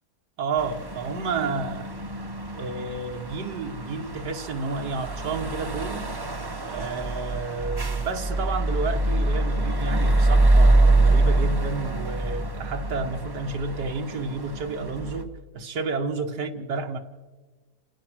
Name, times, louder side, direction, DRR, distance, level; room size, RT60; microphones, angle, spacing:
voice 1, 0.4-1.9 2.5-6.1 6.6-15.3 15.5-17.0, right 4 dB, 80° right, 3 dB, 1.9 m, -31 dB
sound 1, 0.6-15.2, right 2 dB, 15° right, 1.0 m, -25 dB
28.0 x 16.5 x 6.2 m, 1.3 s
omnidirectional pair, 1.8 m